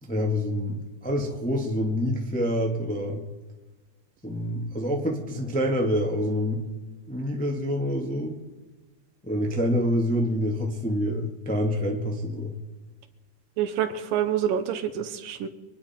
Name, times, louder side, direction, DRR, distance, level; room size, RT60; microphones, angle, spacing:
voice 1, 0.0-3.2 4.2-6.6 7.1-8.4 9.2-12.5, equal, 5° left, 1 dB, 0.9 m, -27 dB
voice 2, 13.6-15.5, right 9 dB, 80° right, 9 dB, 2.7 m, -27 dB
26.0 x 10.0 x 4.5 m, 1.2 s
omnidirectional pair, 4.0 m